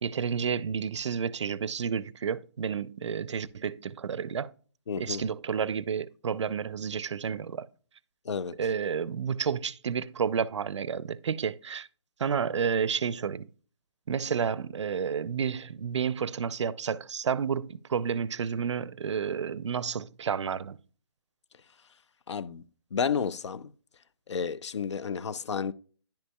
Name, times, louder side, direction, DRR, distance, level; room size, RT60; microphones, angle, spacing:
voice 1, 0.0-4.5 5.0-7.7 8.6-11.9 12.2-13.5 14.1-20.8, right 7 dB, 80° right, 0.4 m, -30 dB
voice 2, 4.9-5.2 8.3-8.6 22.3-22.6 22.9-23.7 24.3-25.7, left 6 dB, 80° left, 0.5 m, -31 dB
10.0 x 5.3 x 2.2 m
hypercardioid pair, 160°, 15 cm